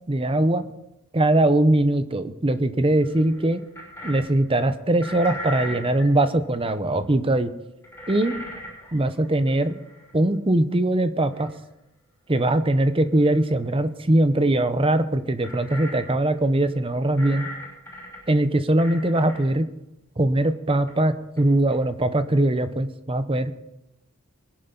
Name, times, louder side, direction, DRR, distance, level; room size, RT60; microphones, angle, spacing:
voice 1, 0.1-0.7 1.1-3.6 4.0-7.5 8.1-8.3 8.9-9.7 10.1-11.5 12.3-17.5 18.3-19.7 20.2-23.5, right 1 dB, 25° right, 10 dB, 0.8 m, -21 dB
sound 1, 2.9-4.3 4.9-6.1 6.9-7.0 7.8-10.1 11.2-11.5 12.3-12.4 13.2-13.5 15.4-16.3 16.6-16.7 17.2-18.2 18.8-19.4 20.9-21.0 21.4-21.5 21.7-21.8, equal, 10° left, 6.4 m, -38 dB
22.5 x 10.5 x 4.0 m, 0.90 s
head